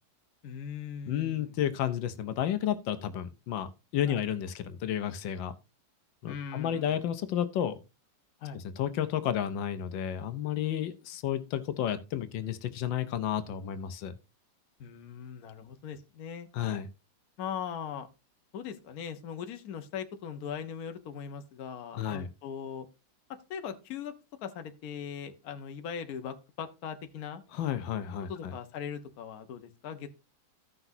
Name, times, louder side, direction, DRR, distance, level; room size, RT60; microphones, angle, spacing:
voice 1, 0.4-1.5 4.1-4.2 6.3-7.0 8.4-8.6 14.8-16.5 17.4-18.1 18.5-22.9 23.5-24.1 24.4-27.4 28.3-30.1, left 7 dB, 60° left, 1.3 m, -40 dB
voice 2, 1.1-5.5 6.2-7.8 8.5-14.1 16.5-16.9 21.9-22.3 27.5-28.5, left 10 dB, 85° left, 1.5 m, -32 dB
15.5 x 5.9 x 2.7 m
omnidirectional pair, 2.0 m